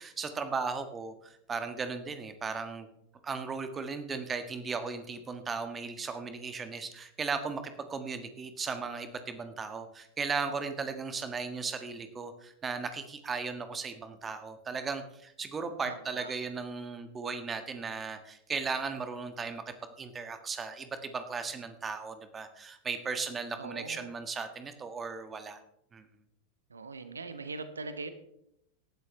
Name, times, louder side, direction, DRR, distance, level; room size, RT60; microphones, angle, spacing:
voice 1, 0.0-2.9 3.2-25.6 25.9-26.1, right 5 dB, 20° right, 9 dB, 1.6 m, -36 dB
voice 2, 15.8-16.3 23.6-24.1 26.7-28.1, right 3 dB, 75° right, 10 dB, 1.2 m, -41 dB
18.5 x 11.5 x 3.2 m, 0.76 s
figure-of-eight pair, 90°, 0 cm